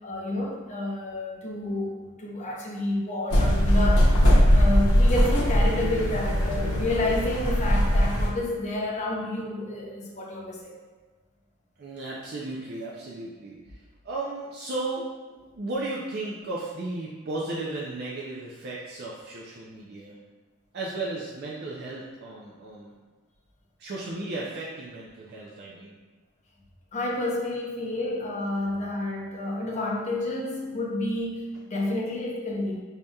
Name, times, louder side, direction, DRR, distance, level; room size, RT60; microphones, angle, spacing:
voice 1, 0.0-1.9 2.2-10.8 26.9-32.8, left 1 dB, 30° left, -3 dB, 0.6 m, -30 dB
sound 1, 3.3-8.3, equal, 75° left, 0.7 m, -20 dB
voice 2, 11.8-20.2 20.7-22.9 23.8-26.0, right 2 dB, 45° right, -5 dB, 0.4 m, -35 dB
4.8 x 2.7 x 2.2 m, 1.4 s
head